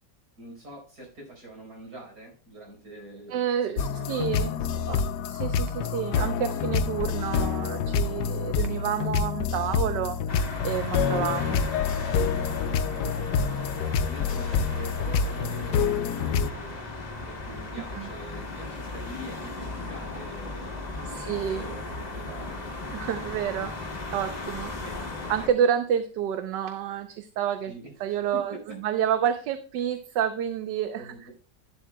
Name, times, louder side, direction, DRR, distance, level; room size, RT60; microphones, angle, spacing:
voice 1, 0.4-4.8 12.6-13.2 13.8-16.8 17.3-22.7 24.8-25.2 27.7-28.8 31.0-31.3, right 1 dB, 60° right, 0 dB, 4.8 m, -45 dB
voice 2, 3.3-3.8 4.1-4.6 4.9-5.0 5.3-11.6 17.8-18.1 21.0-21.6 22.9-23.7 24.1-24.7 25.3-27.7 28.0-28.6 28.8-31.3, right 9 dB, 80° right, 8 dB, 1.3 m, -29 dB
sound 1, 3.8-16.5, left 6 dB, 75° left, 1.1 m, -27 dB
sound 2, 10.3-25.5, left 2 dB, 25° left, 1.4 m, -36 dB
12.0 x 11.0 x 2.2 m, 0.38 s
omnidirectional pair, 1.9 m